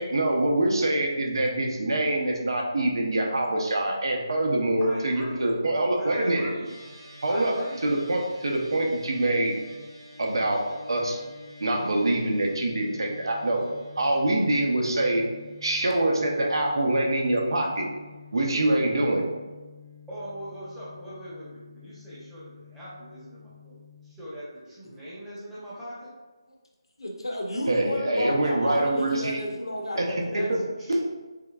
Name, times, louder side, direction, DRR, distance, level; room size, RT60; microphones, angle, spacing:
voice 1, 0.0-6.5 7.2-7.5 7.8-9.5 10.2-10.6 10.9-11.2 11.6-13.6 14.0-15.2 15.6-17.9 18.3-19.2 27.7-29.4 30.5-30.6 30.9-31.0, right 1 dB, 60° right, 1 dB, 0.7 m, -25 dB
voice 2, 4.8-5.4 6.0-6.7 7.2-7.8 20.1-23.7 24.0-26.1 30.1-30.5 30.7-31.0, equal, 5° right, -11 dB, 0.9 m, -40 dB
sound 1, 6.6-24.1, left 3 dB, 90° right, 1.3 m, -48 dB
voice 3, 27.0-30.0 30.3-30.5, left 1 dB, 75° left, 0 dB, 0.7 m, -31 dB
3.7 x 3.6 x 2.2 m, 1.3 s
figure-of-eight pair, 160°, 3 cm